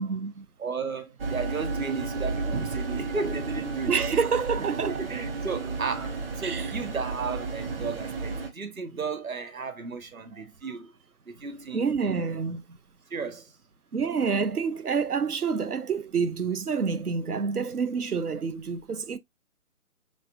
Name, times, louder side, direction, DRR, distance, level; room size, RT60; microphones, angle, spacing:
voice 1, 0.0-0.5 2.5-2.7 3.9-5.0 6.4-6.7 11.7-12.8 13.9-19.2, right 5 dB, 85° right, 0.7 m, -28 dB
voice 2, 0.6-4.1 4.4-10.9 11.3-12.2 13.1-13.5, right 4 dB, 70° right, 1.3 m, -34 dB
sound 1, 1.2-8.5, right 4 dB, 40° right, 1.2 m, -32 dB
5.3 x 3.5 x 2.5 m
figure-of-eight pair, 145°, 44 cm